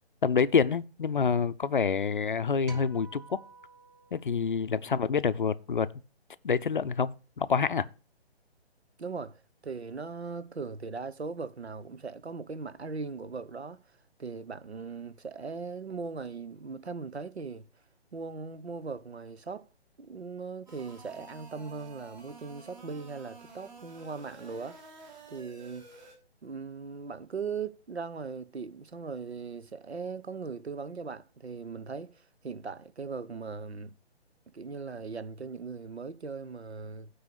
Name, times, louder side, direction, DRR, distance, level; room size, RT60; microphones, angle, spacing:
voice 1, 0.2-3.4 4.1-5.9 6.4-7.9, left 6 dB, 50° left, 0.6 m, -27 dB
sound 1, 2.7-5.2, right 3 dB, 15° right, 1.0 m, -49 dB
voice 2, 9.0-13.8 14.2-17.7 18.1-19.7 20.0-24.8 25.3-25.9 26.4-33.9 34.5-37.1, right 4 dB, 75° right, 0.8 m, -39 dB
sound 2, 20.7-26.2, right 3 dB, 45° right, 3.2 m, -51 dB
9.0 x 4.8 x 6.6 m
figure-of-eight pair, 140°, 33 cm